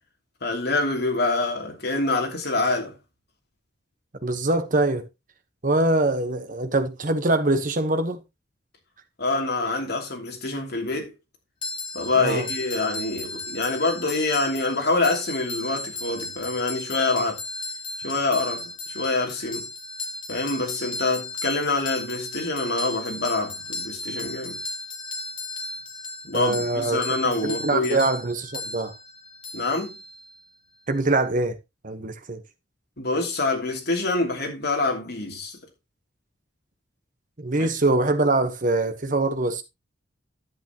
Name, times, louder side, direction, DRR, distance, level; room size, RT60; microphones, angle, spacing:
voice 1, 0.4-2.9 9.2-11.1 11.9-17.4 18.0-19.7 20.3-24.6 26.3-28.0 29.5-29.9 33.0-35.6 37.6-37.7, left 3 dB, 55° left, 2.9 m, -26 dB
voice 2, 4.2-5.0 5.6-8.2 12.2-12.5 26.3-27.0 27.2-28.9 30.9-31.5 31.8-32.4 37.4-39.6, right 2 dB, 45° right, 1.2 m, -23 dB
sound 1, 11.6-30.4, left 2 dB, 25° left, 1.7 m, -35 dB
11.0 x 8.1 x 3.0 m
head